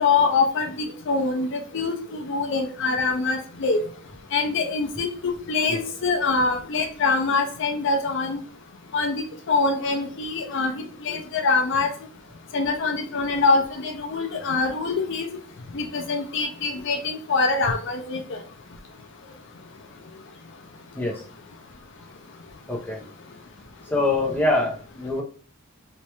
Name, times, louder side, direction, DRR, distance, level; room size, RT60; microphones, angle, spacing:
voice 1, 0.0-3.8 4.3-8.4 8.9-11.9 12.5-15.3 15.7-18.4, left 4 dB, 65° left, 5 dB, 0.5 m, -24 dB
voice 2, 22.7-23.0 23.9-25.2, left 2 dB, 10° left, -2 dB, 0.8 m, -24 dB
3.3 x 3.1 x 3.0 m, 0.43 s
head